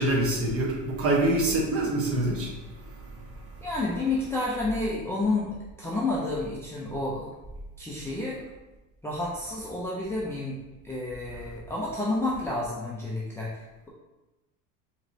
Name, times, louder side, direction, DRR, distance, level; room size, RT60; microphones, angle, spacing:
voice 1, 0.0-3.4, right 1 dB, 40° right, -2 dB, 1.1 m, -26 dB
voice 2, 3.6-7.3 7.8-8.4 9.0-13.9, left 2 dB, 5° left, -7 dB, 0.4 m, -30 dB
4.2 x 3.0 x 2.7 m, 1.1 s
cardioid pair, 140°, 36 cm